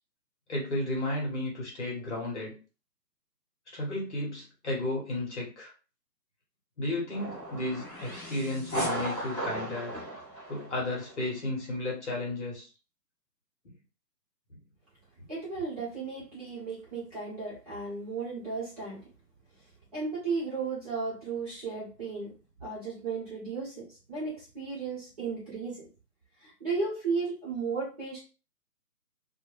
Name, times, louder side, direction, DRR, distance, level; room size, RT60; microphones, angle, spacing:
voice 1, 0.5-2.5 3.7-5.7 6.8-10.0 10.5-12.7, left 2 dB, 45° left, -3 dB, 1.0 m, -33 dB
sound 1, 7.1-11.2, right 1 dB, 10° left, 0.8 m, -36 dB
voice 2, 15.3-19.0 19.9-22.3 22.6-25.8 26.4-28.2, right 4 dB, 25° right, -9 dB, 1.0 m, -34 dB
2.2 x 2.1 x 3.0 m, 0.33 s
hypercardioid pair, 160°, 50 cm